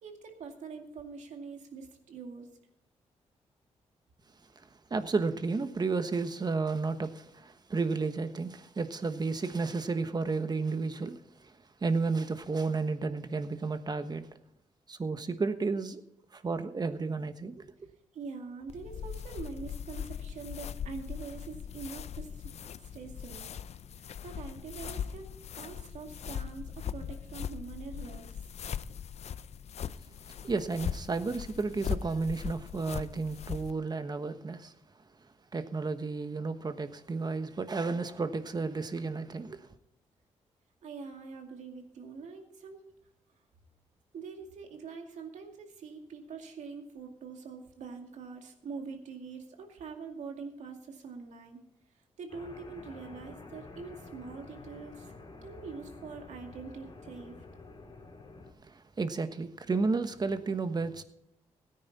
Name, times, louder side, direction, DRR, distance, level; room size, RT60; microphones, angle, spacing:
voice 1, 0.0-2.5 18.1-22.5 22.8-23.5 23.9-25.3 25.5-28.4 40.8-42.9 44.1-51.6 52.2-55.1 55.4-57.3, right 5 dB, 80° right, 2.3 m, -44 dB
voice 2, 4.6-14.3 14.9-16.0 16.3-17.7 30.4-34.7 35.5-39.7 58.6-61.0, right 4 dB, 35° right, 1.3 m, -32 dB
sound 1, 18.7-33.7, left 8 dB, 65° left, 0.5 m, -40 dB
sound 2, 52.3-58.5, left 3 dB, 45° left, 2.8 m, -49 dB
17.0 x 9.9 x 4.2 m
cardioid pair, 80°, 12 cm